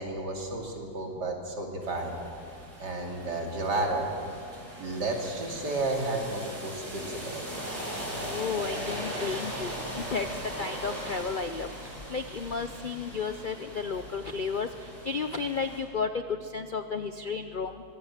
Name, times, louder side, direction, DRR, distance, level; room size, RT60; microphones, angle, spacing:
voice 1, 0.0-2.2 2.8-4.1 4.8-7.5, right 2 dB, 85° right, 0 dB, 3.4 m, -32 dB
sound 1, 1.8-15.8, equal, 20° right, 5.4 m, -39 dB
voice 2, 8.2-10.3 10.6-14.7 15.1-17.8, left 5 dB, 60° left, 9 dB, 0.5 m, -33 dB
24.5 x 17.0 x 7.4 m, 2.4 s
omnidirectional pair, 1.8 m